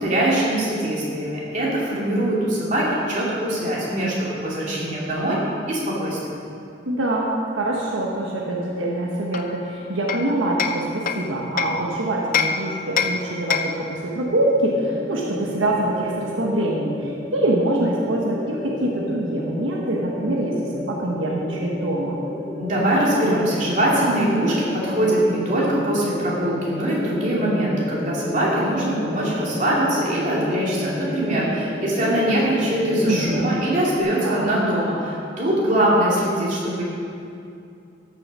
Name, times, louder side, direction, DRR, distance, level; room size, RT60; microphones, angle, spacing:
voice 1, 0.0-5.4 5.7-6.4 22.6-36.8, right 1 dB, 40° right, -6 dB, 2.8 m, -22 dB
voice 2, 6.9-22.2 33.1-33.5 34.2-34.5, right 1 dB, 80° right, -2 dB, 1.2 m, -24 dB
Hammer, 9.3-11.9 12.3-13.9, left 7 dB, 45° left, 0.5 m, -26 dB
sound 1, 14.3-34.0, left 1 dB, ahead, 0.9 m, -32 dB
13.5 x 6.6 x 5.5 m, 2.5 s
head